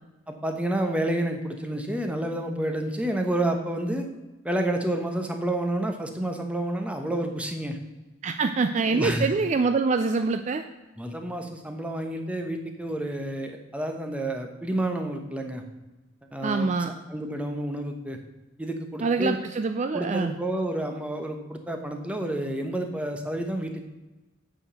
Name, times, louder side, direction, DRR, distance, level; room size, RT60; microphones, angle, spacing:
voice 1, 0.3-4.1 4.4-7.8 8.8-9.3 11.0-15.6 16.3-16.7 17.1-18.2 18.6-19.4 19.9-23.8, right 1 dB, 5° right, 4 dB, 0.9 m, -29 dB
voice 2, 8.2-10.6 16.4-16.9 19.0-20.4, right 4 dB, 35° right, 8 dB, 0.4 m, -25 dB
8.5 x 5.0 x 6.7 m, 1.1 s
head